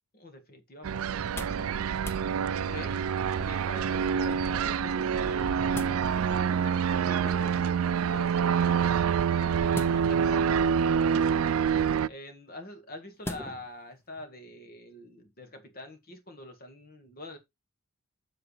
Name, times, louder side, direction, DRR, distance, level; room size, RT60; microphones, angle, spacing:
voice 1, 0.1-1.8 2.7-3.0 3.4-6.2 6.5-7.7 8.1-10.5 12.1-17.4, left 2 dB, 45° left, 1.7 m, -45 dB
sound 1, 0.8-12.1, right 7 dB, 80° right, 0.4 m, -26 dB
sound 2, 1.1-1.7 2.0-2.2 3.4-3.8 5.3-6.0 7.2-7.7 9.7-10.3 11.1-11.6 13.2-13.7 14.2-14.3, left 1 dB, 10° left, 0.7 m, -41 dB
7.7 x 6.7 x 3.3 m
head